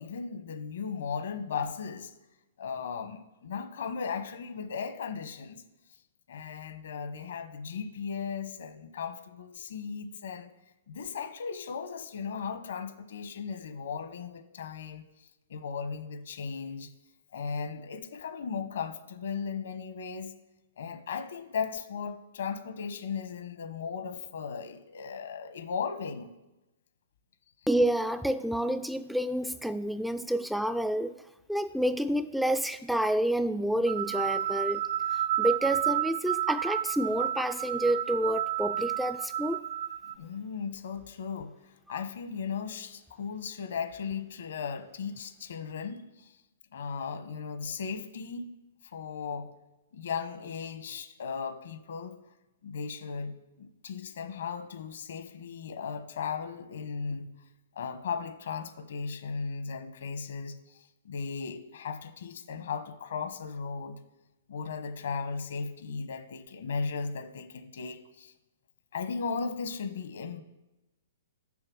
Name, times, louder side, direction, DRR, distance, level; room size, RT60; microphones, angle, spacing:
voice 1, 0.0-2.1 2.6-5.6 6.3-10.5 10.9-15.1 15.5-16.9 17.3-20.4 20.8-26.3 40.0-46.4 46.7-48.5 48.8-49.5 49.9-52.2 52.6-57.3 57.7-64.0 64.5-68.3 68.9-70.4, left 6 dB, 75° left, 1.1 m, -36 dB
voice 2, 27.7-31.2 31.5-34.8 35.1-39.6, right 1 dB, ahead, 0.3 m, -29 dB
sound 1, 33.9-40.1, right 12 dB, 60° right, 0.5 m, -31 dB
7.6 x 6.7 x 6.2 m
hypercardioid pair, 140°, 0 cm